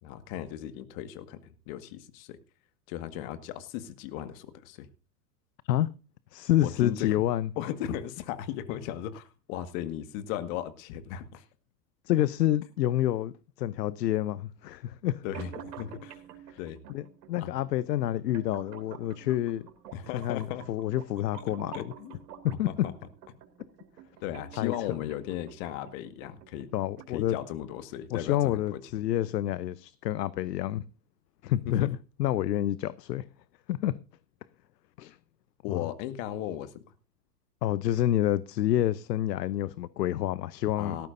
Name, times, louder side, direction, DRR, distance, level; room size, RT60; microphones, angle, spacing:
voice 1, 0.0-2.4 2.9-4.9 6.6-7.2 7.6-11.4 15.2-16.2 16.6-16.8 17.4-17.5 19.9-20.6 21.7-22.2 22.7-22.9 24.2-26.7 27.1-28.9 31.7-31.9 35.6-36.8 40.8-41.1, left 11 dB, 50° left, 1.8 m, -36 dB
voice 2, 6.3-7.5 12.1-13.3 13.6-15.2 16.5-16.6 16.9-19.6 20.1-21.9 22.4-22.7 24.6-24.7 26.7-27.4 28.1-30.8 31.4-33.3 33.7-33.9 35.0-35.2 35.7-35.8 37.6-41.0, left 13 dB, 75° left, 0.8 m, -28 dB
sound 1, 15.3-27.3, right 9 dB, 70° right, 3.0 m, -49 dB
17.5 x 14.0 x 2.6 m
hypercardioid pair, 95°, 50 cm